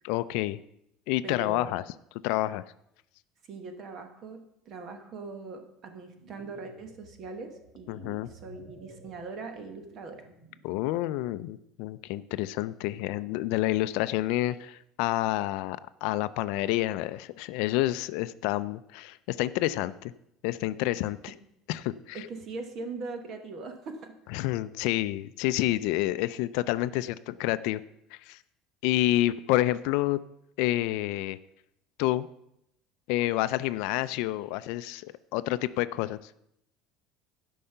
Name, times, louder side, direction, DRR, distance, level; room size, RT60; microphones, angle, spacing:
voice 1, 0.0-0.6 1.1-1.8 2.2-2.6 7.9-8.3 10.6-20.1 20.4-21.3 21.7-22.2 24.3-27.8 28.1-28.4 28.8-30.2 30.6-31.4 32.0-32.3 33.1-36.3, left 16 dB, 70° left, 15 dB, 0.4 m, -29 dB
voice 2, 1.2-1.8 3.5-10.3 21.2-21.3 22.1-24.1, right 3 dB, 40° right, 6 dB, 1.3 m, -41 dB
sound 1, 6.0-10.7, right 2 dB, 65° right, 3.8 m, -54 dB
12.5 x 5.5 x 5.6 m, 0.79 s
cardioid pair, 165°, 0 cm